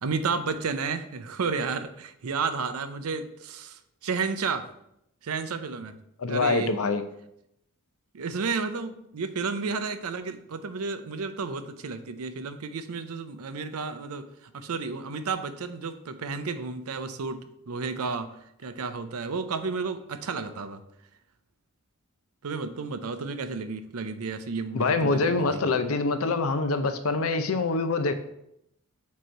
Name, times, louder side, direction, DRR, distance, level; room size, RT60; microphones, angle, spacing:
voice 1, 0.0-4.7 5.2-6.0 6.3-6.7 8.1-20.8 22.4-25.6, right 4 dB, 85° right, 10 dB, 0.5 m, -32 dB
voice 2, 6.2-7.0 24.7-28.1, left 3 dB, 75° left, 9 dB, 0.6 m, -25 dB
7.4 x 3.0 x 4.5 m, 0.79 s
head